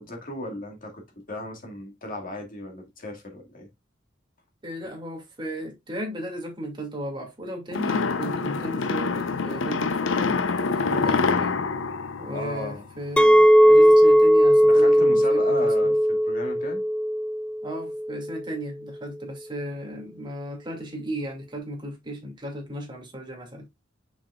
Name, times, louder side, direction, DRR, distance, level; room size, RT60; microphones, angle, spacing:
voice 1, 0.0-3.7 12.3-12.9 14.6-16.8, left 1 dB, 45° left, 2.1 m, -36 dB
voice 2, 4.6-10.4 10.7-11.7 12.2-16.0 17.6-23.7, equal, 25° right, 2.3 m, -35 dB
sound 1, 7.7-13.1, left 4 dB, 85° left, 0.7 m, -26 dB
Chink clink, 13.2-18.3, equal, 5° left, 0.3 m, -18 dB
7.0 x 6.1 x 2.4 m
head